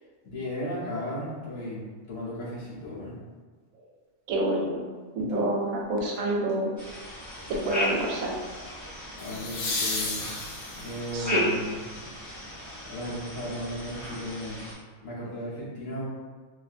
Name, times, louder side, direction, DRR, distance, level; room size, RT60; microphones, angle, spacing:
voice 1, 0.2-3.2 5.2-5.4 9.1-10.3 10.7-11.8 12.8-14.6 15.0-16.1, left 1 dB, 80° left, -8 dB, 1.4 m, -35 dB
voice 2, 4.3-4.9 5.1-6.7 7.5-8.3 11.1-11.6, right 1 dB, 85° right, -1 dB, 1.0 m, -27 dB
sound 1, 6.1-6.5 9.2-11.1 13.9-14.0, left 3 dB, 60° left, 0.7 m, -32 dB
sound 2, 6.8-14.7, left 1 dB, 25° left, 0.4 m, -36 dB
2.7 x 2.5 x 2.5 m, 1.5 s
omnidirectional pair, 1.4 m